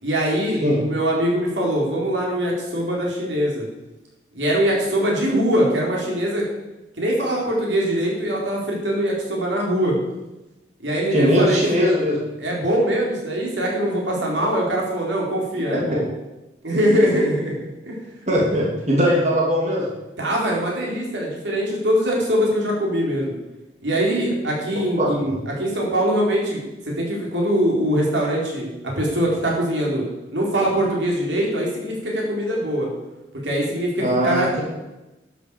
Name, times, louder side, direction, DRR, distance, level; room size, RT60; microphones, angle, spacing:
voice 1, 0.0-3.7 4.3-6.5 7.0-10.0 10.8-11.6 12.4-16.1 16.6-18.0 20.2-23.4 23.8-26.6 27.0-30.0 30.3-32.9 33.4-34.5, equal, 85° right, -2 dB, 4.1 m, -22 dB
voice 2, 11.1-12.2 18.3-19.9 25.0-25.1 34.0-34.6, equal, 40° right, -3 dB, 3.0 m, -19 dB
12.0 x 8.5 x 7.1 m, 1.0 s
head